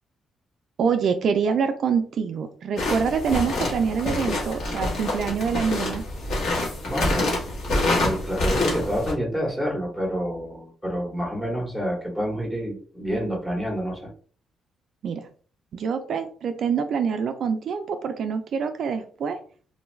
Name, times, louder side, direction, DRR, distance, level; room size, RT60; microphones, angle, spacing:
voice 1, 0.8-6.0 15.0-15.2 15.7-19.4, right 6 dB, 55° right, 7 dB, 0.3 m, -25 dB
sound 1, 2.8-9.1, left 2 dB, 70° left, 1.3 m, -26 dB
voice 2, 6.8-7.3 7.9-14.1, equal, 10° left, -1 dB, 1.0 m, -28 dB
2.6 x 2.3 x 3.1 m, 0.43 s
cardioid pair, 125°, 0 cm